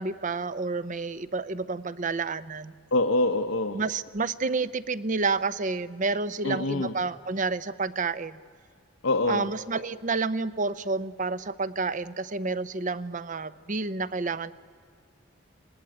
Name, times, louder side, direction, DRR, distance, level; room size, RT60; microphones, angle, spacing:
voice 1, 0.0-2.7 3.7-8.4 9.3-14.5, right 4 dB, 40° right, 16 dB, 0.7 m, -29 dB
voice 2, 2.9-3.8 6.4-6.9 9.0-9.5, left 2 dB, 80° left, 4 dB, 1.0 m, -25 dB
27.0 x 20.0 x 8.9 m, 2.1 s
head